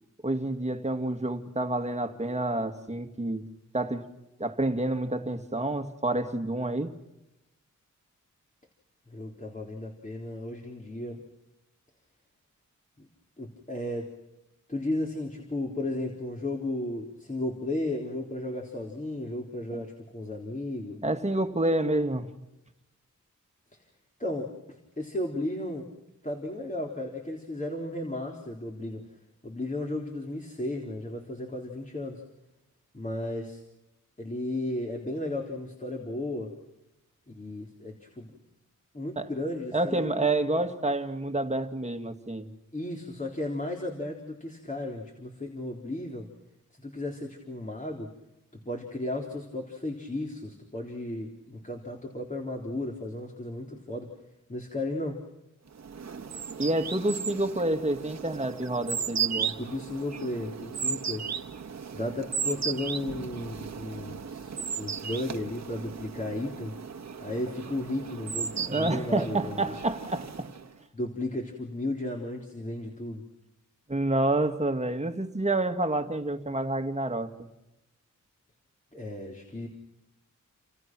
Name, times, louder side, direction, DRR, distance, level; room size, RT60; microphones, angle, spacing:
voice 1, 0.2-3.5 3.7-4.1 4.4-7.0 21.0-22.3 39.2-39.3 39.7-42.5 56.6-59.5 68.5-70.5 73.9-77.5, right 2 dB, 20° right, 2.2 m, -28 dB
voice 2, 9.1-11.2 13.0-13.1 13.4-14.1 14.7-21.0 24.2-25.9 26.2-29.0 29.4-32.2 32.9-33.6 34.2-36.5 37.3-38.4 38.9-40.3 40.5-40.6 42.7-46.3 46.8-48.1 48.7-54.1 54.5-55.2 59.6-61.4 61.9-66.7 67.2-69.7 70.9-73.2 78.9-79.7, left 1 dB, 25° left, 3.8 m, -34 dB
sound 1, 55.8-70.7, right 7 dB, 60° right, 1.6 m, -35 dB
29.5 x 27.5 x 6.2 m
wide cardioid pair, 90°, 31 cm